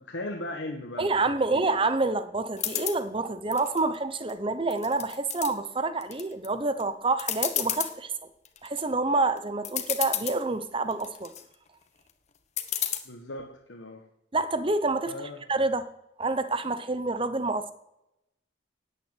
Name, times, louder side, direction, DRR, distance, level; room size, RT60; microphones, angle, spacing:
voice 1, 0.0-1.6 13.0-14.0 15.1-15.4, left 1 dB, 75° left, 1.4 m, -38 dB
voice 2, 1.0-8.1 8.6-11.3 14.3-15.1 15.5-15.9 16.2-17.7, right 3 dB, 30° right, 0.9 m, -27 dB
sound 1, 2.6-3.0 3.5-4.3 4.7-5.5 6.0-6.5 6.8-6.9 7.2-7.9 8.5-8.8 9.4-9.5 9.6-10.4 10.9-11.4 12.6-13.0, left 11 dB, 35° left, 1.1 m, -31 dB
11.0 x 8.8 x 9.0 m
head